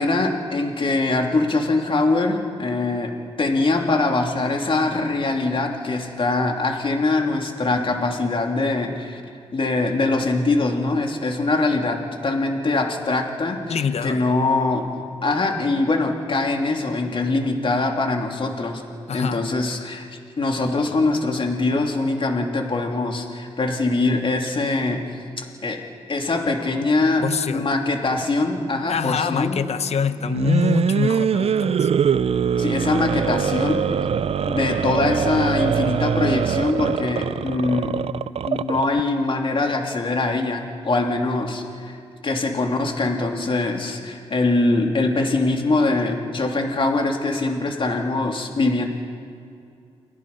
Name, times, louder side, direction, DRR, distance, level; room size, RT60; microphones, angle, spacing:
voice 1, 0.0-9.2 9.5-14.9 15.2-18.8 19.1-20.0 20.4-25.0 25.4-25.8 26.1-29.6 32.6-34.1 34.5-38.0 38.5-48.9, left 2 dB, 50° left, 2 dB, 3.2 m, -23 dB
voice 2, 13.7-14.2 19.1-19.4 27.2-27.7 28.9-31.9, left 6 dB, 65° left, 11 dB, 1.1 m, -24 dB
sound 1, 30.2-39.0, right 7 dB, 60° right, 0.6 m, -23 dB
29.5 x 18.0 x 5.6 m, 2.5 s
cardioid pair, 70°, 12 cm